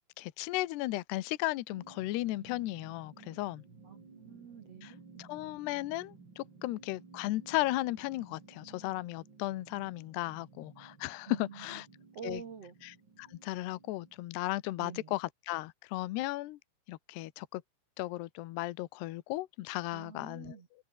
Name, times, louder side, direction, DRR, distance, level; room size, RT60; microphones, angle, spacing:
voice 1, 0.2-3.6 4.8-11.9 12.2-12.4 12.8-16.6 16.9-17.6 18.0-20.6, left 18 dB, 75° left, 2.5 m, -35 dB
sound 1, 1.7-14.4, right 4 dB, 25° right, 3.1 m, -56 dB
voice 2, 3.8-5.3 11.3-11.8 12.1-12.7 14.8-15.1 19.9-20.7, right 6 dB, 60° right, 1.6 m, -47 dB
omnidirectional pair, 5.9 m